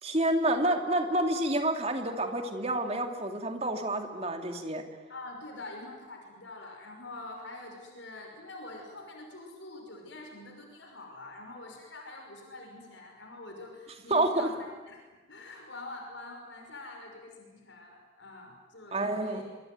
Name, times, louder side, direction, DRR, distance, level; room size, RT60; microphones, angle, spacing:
voice 1, 0.0-4.8 14.1-14.5 18.9-19.5, right 1 dB, 30° right, 5 dB, 2.8 m, -28 dB
voice 2, 5.1-15.0 15.3-19.4, left 2 dB, 70° left, 2 dB, 5.9 m, -45 dB
26.0 x 23.5 x 9.5 m, 1.3 s
head